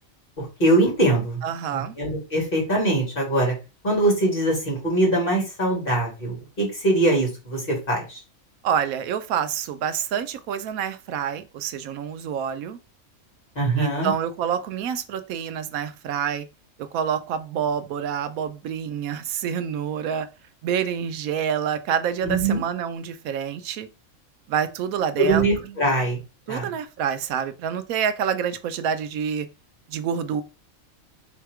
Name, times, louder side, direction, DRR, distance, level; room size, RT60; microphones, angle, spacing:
voice 1, 0.4-1.4 1.7-3.5 3.8-8.2 13.6-14.1 22.2-22.6 25.2-26.2 26.5-26.7, right 2 dB, 40° left, 2.3 m, -22 dB
voice 2, 1.4-2.0 8.6-12.8 13.8-16.5 16.8-20.3 20.6-23.9 24.5-25.8 26.5-29.5 29.9-30.4, right 8 dB, 85° right, 1.1 m, -27 dB
3.6 x 2.9 x 4.7 m
omnidirectional pair, 1.4 m